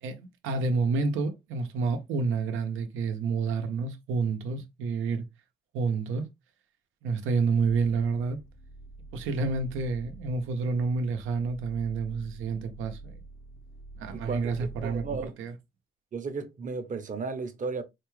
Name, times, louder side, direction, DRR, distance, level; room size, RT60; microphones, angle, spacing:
voice 1, 0.0-5.3 5.7-6.3 7.0-8.4 9.1-13.2 14.0-15.5, right 4 dB, 90° right, 0.8 m, -29 dB
sound 1, 7.5-15.3, right 2 dB, 15° left, 0.5 m, -46 dB
voice 2, 14.1-14.5 14.8-15.3 16.1-17.8, right 4 dB, 40° right, 0.8 m, -34 dB
4.2 x 2.3 x 3.1 m
cardioid pair, 90°, 20 cm